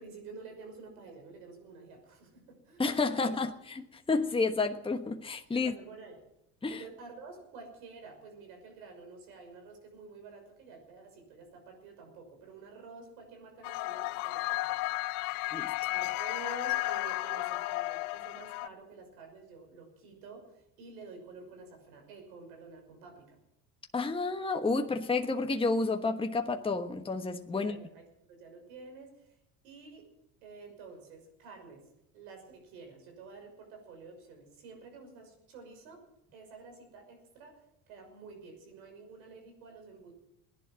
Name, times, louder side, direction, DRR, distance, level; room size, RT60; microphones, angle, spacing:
voice 1, 0.0-2.8 3.1-3.3 5.5-6.2 6.7-14.8 15.1-15.5 15.9-23.4 27.5-28.0 28.3-29.3 29.6-30.0 30.4-31.9 32.1-36.0 36.3-40.1, right 4 dB, 85° right, 3 dB, 6.2 m, -50 dB
voice 2, 2.8-5.7 6.6-6.8 15.5-15.7 23.9-27.8, left 3 dB, 10° left, 6 dB, 1.2 m, -30 dB
sound 1, 13.6-18.7, left 20 dB, 85° left, 0.6 m, -33 dB
17.5 x 11.0 x 7.5 m, 0.83 s
supercardioid pair, 90°, 43 cm